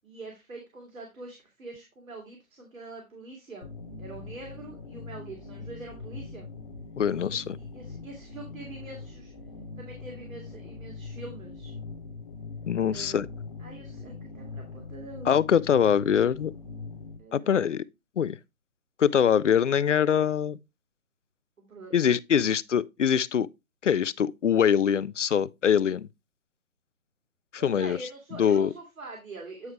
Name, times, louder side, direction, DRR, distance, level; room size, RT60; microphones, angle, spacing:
voice 1, 0.0-3.7 4.0-6.5 7.3-9.3 9.8-11.7 12.9-13.3 13.6-15.6 17.2-17.6 21.6-21.9 27.6-29.7, right 3 dB, 70° right, 2.5 m, -44 dB
sound 1, 3.6-17.2, left 4 dB, 25° left, 0.8 m, -42 dB
voice 2, 7.0-7.6 12.7-13.3 15.3-16.5 17.3-17.9 18.2-18.4 19.0-20.6 21.9-23.5 23.8-26.1 27.5-28.0 28.4-28.7, left 8 dB, 60° left, 0.5 m, -23 dB
9.6 x 4.8 x 3.2 m
figure-of-eight pair, 150°, 42 cm